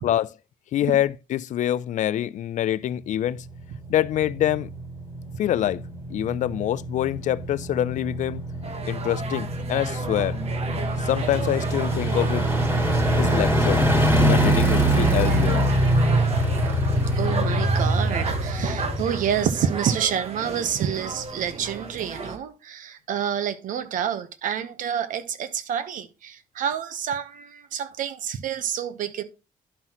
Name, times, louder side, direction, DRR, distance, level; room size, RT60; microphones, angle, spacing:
voice 1, 0.7-3.4 3.9-4.7 5.4-5.8 6.1-8.4 8.9-10.4 11.0-12.5 13.1-13.8 14.2-15.7, left 12 dB, 65° left, 0.4 m, -25 dB
sound 1, 3.5-20.1 20.5-20.6, right 1 dB, 20° right, 3.9 m, -24 dB
sound 2, 8.6-22.4, right 4 dB, 50° right, 1.5 m, -34 dB
voice 2, 17.2-29.2, right 8 dB, 75° right, 1.0 m, -28 dB
11.0 x 5.5 x 3.0 m
cardioid pair, 85°, 14 cm